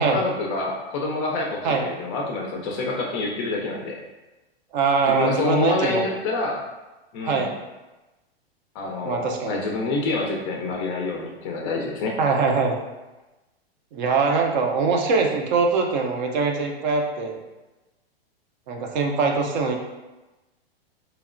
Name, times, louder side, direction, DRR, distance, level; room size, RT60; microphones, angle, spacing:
voice 1, 0.1-4.0 5.1-6.6 7.1-7.5 8.7-12.1, left 3 dB, 35° left, 0 dB, 0.4 m, -27 dB
voice 2, 4.7-6.1 7.2-7.6 8.8-9.6 12.2-12.8 13.9-17.4 18.7-19.8, right 4 dB, 50° right, 2 dB, 0.4 m, -22 dB
2.9 x 2.0 x 2.4 m, 1.1 s
hypercardioid pair, 125°, 31 cm